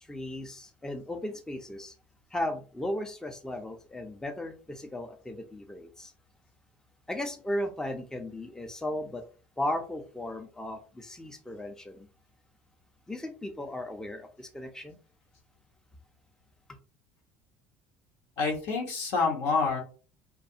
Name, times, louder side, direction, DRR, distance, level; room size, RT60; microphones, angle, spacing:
voice 1, 0.0-1.9 2.3-6.1 7.1-9.2 9.6-12.1 13.1-15.0, left 1 dB, 10° left, 0.5 m, -36 dB
voice 2, 18.4-19.8, left 4 dB, 70° left, 0.9 m, -27 dB
2.4 x 2.2 x 2.7 m
hypercardioid pair, 75°, 7 cm